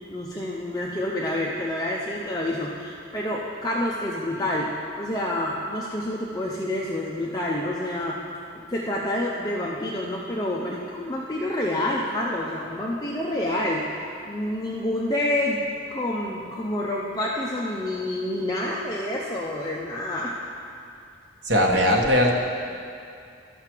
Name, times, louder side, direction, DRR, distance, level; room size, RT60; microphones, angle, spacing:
voice 1, 0.1-4.7 5.0-8.2 8.5-20.4, left 1 dB, 20° left, -4 dB, 0.6 m, -28 dB
voice 2, 21.4-22.3, equal, 65° right, 0 dB, 1.2 m, -19 dB
13.5 x 5.9 x 4.5 m, 2.4 s
head